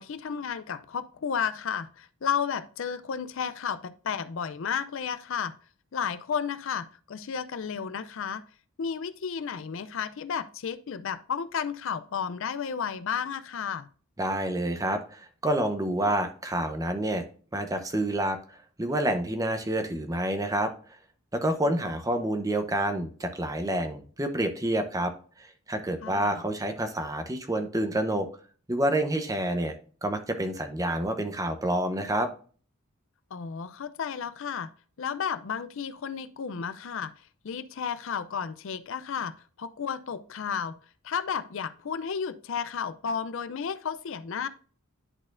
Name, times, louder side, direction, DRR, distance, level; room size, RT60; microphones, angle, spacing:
voice 1, 0.0-5.5 5.9-8.4 8.8-13.9 21.8-21.9 26.0-26.4 33.3-34.7 35.0-37.1 37.4-40.7 41.0-44.5, left 7 dB, 65° left, 13 dB, 0.5 m, -32 dB
voice 2, 14.2-17.2 17.5-20.7 21.3-25.1 25.4-28.3 28.7-29.7 30.0-32.3, right 1 dB, 15° right, 7 dB, 0.8 m, -28 dB
11.0 x 4.1 x 2.5 m, 0.41 s
head